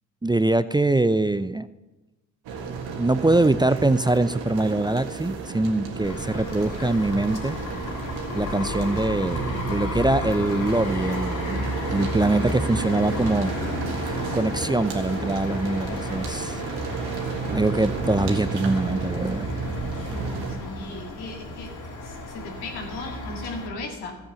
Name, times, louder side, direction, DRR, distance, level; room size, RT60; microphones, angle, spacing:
voice 1, 0.2-1.7 3.0-7.6 8.3-13.5 14.3-16.6 17.5-19.5, right 2 dB, 10° right, 14 dB, 0.5 m, -23 dB
sound 1, 2.4-20.5, right 4 dB, 80° right, 1.9 m, -32 dB
sound 2, 6.0-23.7, left 2 dB, 55° left, 3.7 m, -33 dB
voice 2, 20.1-21.7 22.0-24.2, left 2 dB, 85° left, 2 dB, 2.2 m, -37 dB
14.0 x 7.7 x 7.0 m, 1.1 s
hypercardioid pair, 45°, 38 cm